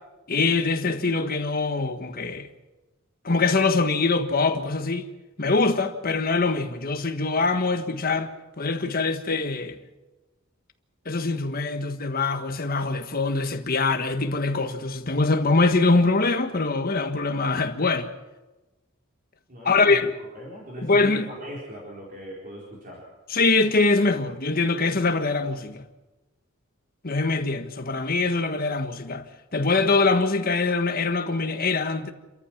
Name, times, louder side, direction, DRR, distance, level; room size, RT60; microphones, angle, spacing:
voice 1, 0.3-2.5 3.2-5.1 5.4-8.3 8.6-9.8 11.0-18.1 19.6-20.1 20.8-21.3 23.3-25.8 27.0-29.3 29.5-32.1, left 3 dB, 45° left, 1.4 m, -23 dB
voice 2, 19.5-23.1, equal, 40° right, 4.3 m, -40 dB
28.0 x 14.0 x 7.3 m
head